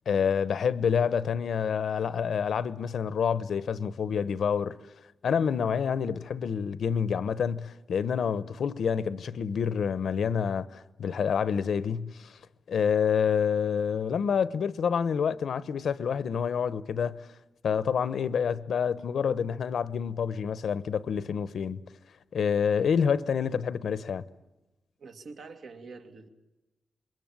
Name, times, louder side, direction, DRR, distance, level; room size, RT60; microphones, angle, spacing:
voice 1, 0.1-4.8 5.2-12.4 12.7-17.3 17.6-21.8 22.3-24.2, left 7 dB, 65° left, 1.0 m, -28 dB
voice 2, 25.0-26.3, right 4 dB, 60° right, 2.6 m, -45 dB
27.5 x 22.5 x 9.1 m
wide cardioid pair, 175°, 0 cm